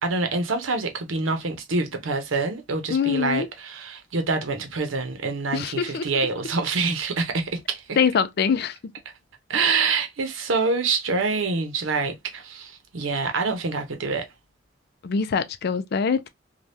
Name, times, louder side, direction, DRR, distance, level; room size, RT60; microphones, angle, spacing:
voice 1, 0.0-8.0 9.5-14.3, right 4 dB, 85° right, 0.8 m, -26 dB
voice 2, 2.9-3.5 5.5-6.1 8.0-8.8 15.0-16.3, left 6 dB, 55° left, 0.4 m, -23 dB
3.3 x 2.3 x 2.6 m
head